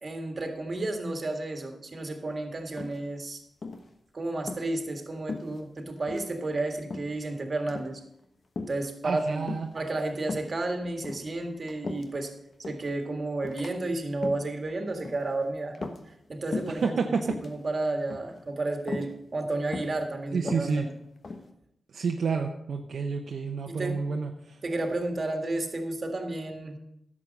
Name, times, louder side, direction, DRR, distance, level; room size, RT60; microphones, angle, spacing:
voice 1, 0.0-3.4 4.1-8.0 8.7-9.4 9.7-12.3 12.6-15.9 16.3-20.9 23.7-24.0 24.6-26.8, right 2 dB, 45° right, 5 dB, 1.8 m, -32 dB
sound 1, 2.8-3.3 3.6-3.9 4.4-4.7 5.3-5.8 6.1-6.3 6.9-7.2 7.6-7.9 8.6-8.8 9.5-9.8 10.3-10.5 11.0-12.2 12.6-12.9 13.4-13.7 14.1-14.5 15.0-15.3 15.7-16.3 16.5-16.8 17.2-17.5 18.1-18.4 18.9-19.1 19.7-20.0 20.4-21.5, left 3 dB, 60° left, 1.2 m, -37 dB
voice 2, 9.0-9.7 16.8-17.2 20.3-20.8 21.9-24.3, right 5 dB, 75° right, 3 dB, 0.8 m, -29 dB
11.0 x 7.4 x 5.3 m, 0.78 s
cardioid pair, 60°, 0 cm